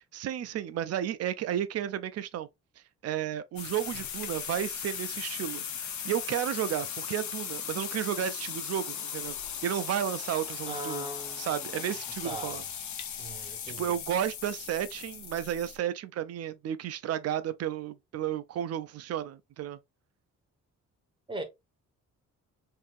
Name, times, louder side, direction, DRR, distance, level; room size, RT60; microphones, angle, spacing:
voice 1, 0.1-2.5 3.0-9.4 9.6-11.1 11.4-12.6 13.4-19.8, right 10 dB, 55° right, 0.4 m, -33 dB
sound 1, 3.6-15.8, left 8 dB, 70° left, 0.9 m, -38 dB
voice 2, 10.6-11.9 12.2-12.7 13.2-14.0 21.3-21.4, right 1 dB, 15° right, 0.8 m, -40 dB
3.7 x 2.7 x 2.5 m
wide cardioid pair, 175°, 30 cm